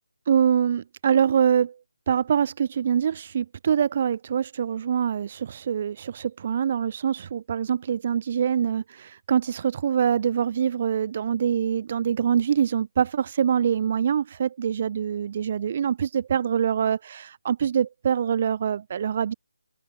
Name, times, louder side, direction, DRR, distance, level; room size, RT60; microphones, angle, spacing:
voice 1, 0.3-1.7 2.1-19.3, right 8 dB, 35° right, 1.0 m, -24 dB
open air
figure-of-eight pair, 165°, 0 cm